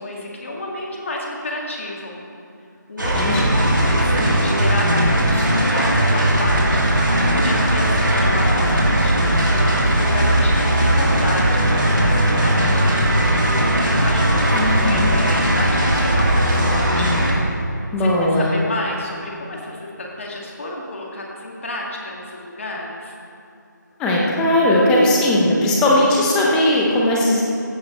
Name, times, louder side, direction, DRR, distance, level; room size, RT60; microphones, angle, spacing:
voice 1, 0.0-2.2 2.9-17.2 18.0-23.1, left 1 dB, 40° left, -2 dB, 2.0 m, -30 dB
sound 1, 3.0-17.3, right 1 dB, 80° right, 2.5 m, -18 dB
voice 2, 14.5-15.1 17.9-18.5 24.0-27.4, left 1 dB, 5° left, -3 dB, 0.7 m, -18 dB
15.5 x 6.4 x 4.4 m, 2.6 s
figure-of-eight pair, 165°, 10 cm